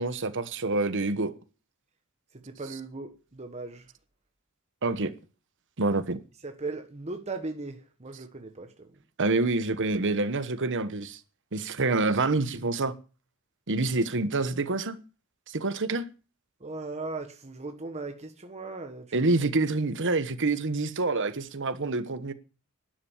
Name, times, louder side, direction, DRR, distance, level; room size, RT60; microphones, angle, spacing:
voice 1, 0.0-1.3 4.8-5.1 5.8-6.2 9.2-11.2 11.5-12.9 13.7-15.0 15.5-16.0 19.1-22.3, right 3 dB, 60° right, 1.2 m, -27 dB
voice 2, 2.3-3.9 6.4-8.9 16.6-19.2, right 3 dB, 30° right, 1.3 m, -38 dB
12.0 x 10.5 x 7.2 m
head